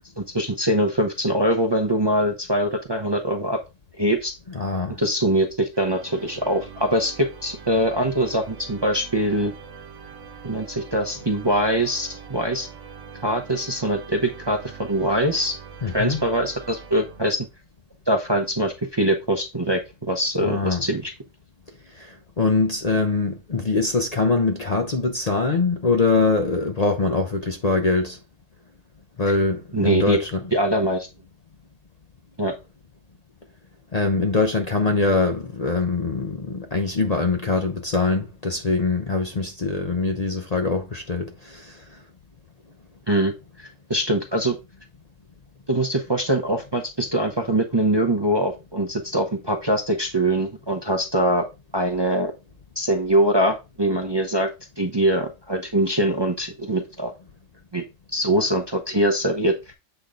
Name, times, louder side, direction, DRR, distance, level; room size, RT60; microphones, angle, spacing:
voice 1, 0.2-3.6 4.0-4.3 5.0-9.5 10.4-12.7 13.2-15.5 15.9-17.5 18.1-21.1 29.7-30.2 30.5-31.1 32.4-32.5 43.1-43.3 43.6-44.6 45.7-51.5 51.7-52.3 52.8-57.1 57.7-57.8 58.1-59.7, right 1 dB, 25° right, 0.7 m, -23 dB
voice 2, 4.5-5.0 15.8-16.2 20.5-20.8 22.0-28.2 29.2-30.4 33.9-41.8, left 3 dB, 40° left, 0.7 m, -23 dB
sound 1, 5.7-17.7, right 6 dB, 75° right, 1.3 m, -43 dB
8.0 x 3.6 x 3.8 m
omnidirectional pair, 1.3 m